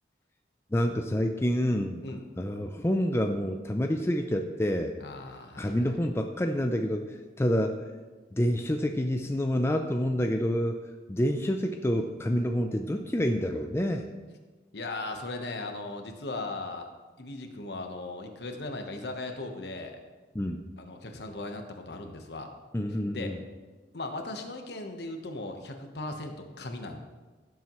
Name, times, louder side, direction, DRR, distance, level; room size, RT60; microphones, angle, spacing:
voice 1, 0.7-2.0 2.4-4.9 5.6-7.0 7.4-7.8 8.3-10.8 11.1-14.1 20.4-20.6 22.7-23.4, equal, 15° left, 5 dB, 0.4 m, -28 dB
voice 2, 5.0-5.9 14.7-16.9 17.2-20.0 20.8-22.5 23.1-23.3 23.9-27.0, left 2 dB, 65° left, 4 dB, 1.1 m, -38 dB
16.0 x 7.4 x 3.1 m, 1.3 s
head